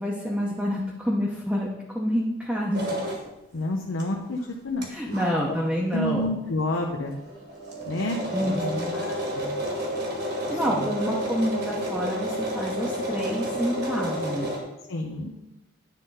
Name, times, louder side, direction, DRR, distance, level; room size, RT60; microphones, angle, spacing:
voice 1, 0.0-3.0 4.9-6.2 8.3-8.9 10.5-14.5, equal, 5° right, -4 dB, 0.9 m, -28 dB
sound 1, 2.7-3.2 4.0-4.1 4.4-4.5 4.8-4.9 5.1-5.3 5.9-6.0 6.2-6.3 6.7-6.8 7.1-14.6, equal, 50° right, 1.6 m, -30 dB
voice 2, 3.5-4.9 5.9-7.2 7.8-8.5 8.9-9.7 10.5-10.9 14.9-15.4, left 1 dB, 90° left, 1 dB, 0.8 m, -30 dB
10.0 x 3.7 x 5.5 m, 0.94 s
head